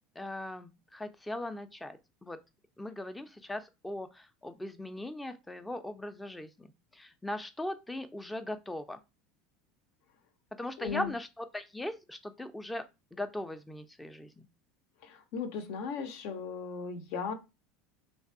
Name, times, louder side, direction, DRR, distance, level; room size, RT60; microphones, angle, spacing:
voice 1, 0.2-2.4 2.8-6.7 6.9-9.0 10.6-12.8 13.1-14.5, left 1 dB, 10° left, 0.4 m, -39 dB
voice 2, 10.8-11.1 15.0-17.3, left 5 dB, 65° left, 0.6 m, -37 dB
3.3 x 2.3 x 2.6 m
hypercardioid pair, 80°, 0 cm